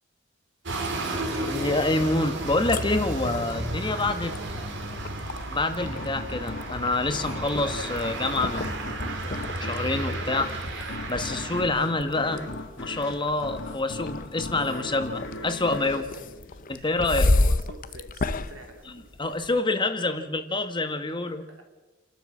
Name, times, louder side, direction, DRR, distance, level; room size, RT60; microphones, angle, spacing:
sound 1, 0.7-11.6, right 2 dB, 65° right, 3.0 m, -33 dB
voice 1, 1.0-4.3 5.5-9.0 9.6-10.5 11.1-12.4 12.8-16.0 16.7-17.3 19.2-21.4, left 2 dB, 25° left, 8 dB, 1.5 m, -27 dB
sound 2, 2.4-19.6, left 2 dB, 45° left, 0.8 m, -32 dB
voice 2, 4.1-4.9 15.9-16.3 16.7-19.1 20.0-20.1 21.5-21.6, right 1 dB, 80° right, 2 dB, 4.3 m, -45 dB
sound 3, 5.8-17.1, left 2 dB, 65° left, 2.1 m, -39 dB
29.0 x 12.0 x 7.3 m, 1.2 s
head